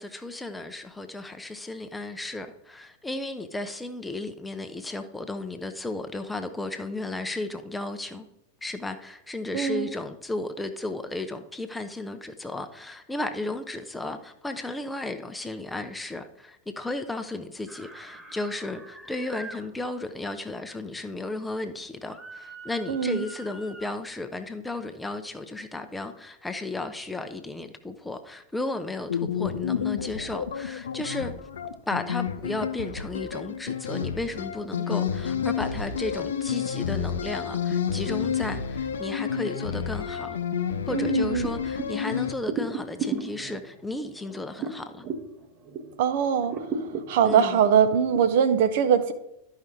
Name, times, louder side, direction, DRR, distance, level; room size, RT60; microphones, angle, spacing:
voice 1, 0.0-8.3 8.6-31.3 31.9-40.4 40.9-45.0 47.2-47.6, left 2 dB, 5° left, 0.7 m, -34 dB
voice 2, 9.5-9.9 22.9-23.2 40.9-41.5 46.0-46.5 47.1-49.1, right 8 dB, 50° right, 0.8 m, -22 dB
sound 1, 17.7-19.6 22.1-23.9, right 2 dB, 15° right, 1.5 m, -45 dB
sound 2, 29.1-42.3, left 7 dB, 65° left, 0.6 m, -30 dB
sound 3, 41.4-46.0 46.4-48.2, right 5 dB, 35° right, 1.1 m, -34 dB
11.5 x 5.5 x 3.7 m
figure-of-eight pair, 90°, 0 cm